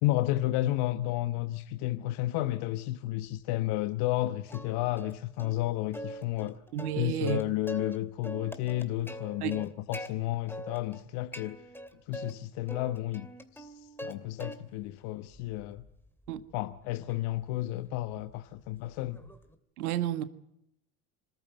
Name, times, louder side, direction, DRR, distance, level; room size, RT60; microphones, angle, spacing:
voice 1, 0.0-6.6 7.0-11.6 12.1-13.3 13.5-15.8 16.5-19.2, left 16 dB, 60° left, 1.2 m, -32 dB
Plucked string instrument, 4.5-5.1 5.4-5.5 5.9-8.0 8.2-10.1 10.5-11.0 11.3-12.3 12.7-14.1 14.4-14.9 15.3-19.5, equal, 5° left, 2.7 m, -43 dB
voice 2, 6.7-7.4 9.4-9.6 16.3-16.4 19.8-20.2, right 10 dB, 80° right, 1.8 m, -31 dB
26.0 x 14.0 x 9.2 m
hypercardioid pair, 85°, 44 cm